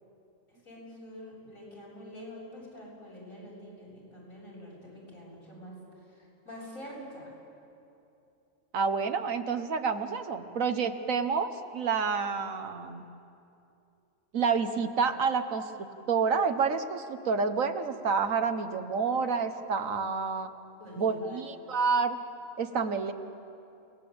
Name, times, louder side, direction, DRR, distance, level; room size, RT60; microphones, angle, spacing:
voice 1, 0.5-5.8 6.1-7.3 20.7-21.4, left 1 dB, 85° left, -4 dB, 7.9 m, -46 dB
voice 2, 8.7-13.1 14.3-15.7 16.1-20.5 21.0-22.2 22.6-23.1, right 5 dB, 75° right, 8 dB, 1.6 m, -29 dB
29.5 x 19.5 x 8.8 m, 2.7 s
omnidirectional pair, 1.4 m